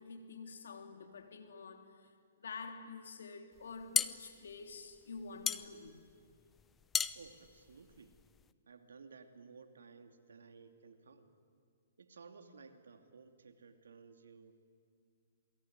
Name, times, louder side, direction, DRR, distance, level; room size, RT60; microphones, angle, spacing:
voice 1, 0.0-2.1 2.4-6.1, left 4 dB, 75° left, 3.4 m, -48 dB
sound 1, 3.6-8.5, left 7 dB, 15° left, 0.8 m, -37 dB
voice 2, 7.1-8.1 8.7-11.3 12.0-14.5, right 5 dB, 80° right, 2.7 m, -56 dB
28.0 x 22.5 x 9.6 m
hypercardioid pair, 135°, 0 cm